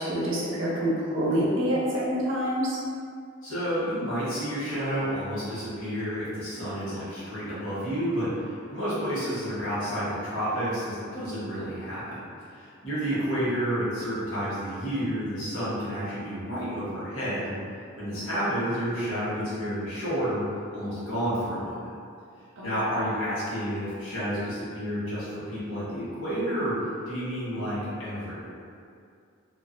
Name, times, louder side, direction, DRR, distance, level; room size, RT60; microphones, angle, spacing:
voice 1, 0.0-2.8 8.9-9.1 18.1-18.5 22.6-22.7, equal, 70° right, -5 dB, 0.6 m, -27 dB
voice 2, 3.4-12.2 12.5-17.6 18.0-20.4 20.7-21.8 22.6-26.7 27.1-28.5, equal, 80° left, -10 dB, 1.1 m, -30 dB
2.4 x 2.1 x 2.4 m, 2.3 s
head